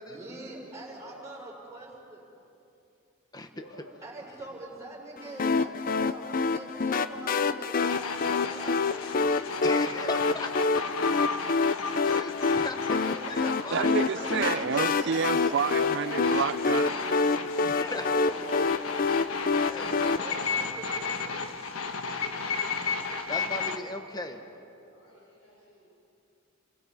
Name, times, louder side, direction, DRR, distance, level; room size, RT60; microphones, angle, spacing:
voice 1, 0.0-2.3 4.0-8.8 12.9-15.9 17.9-18.7 19.3-19.4 19.9-22.0, right 1 dB, 15° right, 5.9 m, -44 dB
voice 2, 0.6-1.3 3.5-3.9 17.7-18.3 19.4-20.8 22.1-23.6 23.9-24.6 24.9-25.9, left 1 dB, 65° left, 6.3 m, -53 dB
voice 3, 3.3-3.6 9.6-10.6 12.0-14.7 17.3-18.1 19.7-19.9 23.3-24.4, left 2 dB, 20° left, 1.3 m, -38 dB
sound 1, 5.4-20.2, left 4 dB, 40° left, 0.5 m, -27 dB
sound 2, 7.8-23.8, left 5 dB, 85° left, 1.3 m, -34 dB
voice 4, 13.7-17.7, right 6 dB, 55° right, 0.4 m, -30 dB
29.0 x 23.5 x 5.5 m
head